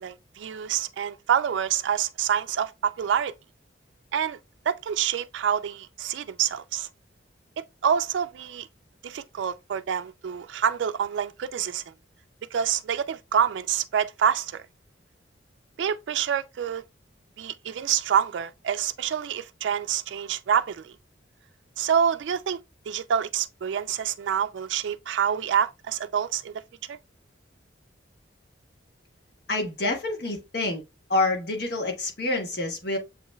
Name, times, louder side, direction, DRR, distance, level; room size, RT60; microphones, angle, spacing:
voice 1, 0.0-3.3 4.1-4.4 4.7-6.9 7.8-8.7 9.0-11.8 12.5-14.6 15.8-16.8 17.4-21.0 21.8-22.6 22.9-26.5 26.9-27.0, right 8 dB, 75° right, 0.3 m, -27 dB
voice 2, 29.5-30.8 31.1-33.0, left 2 dB, 55° left, 1.3 m, -27 dB
7.0 x 3.1 x 2.2 m
head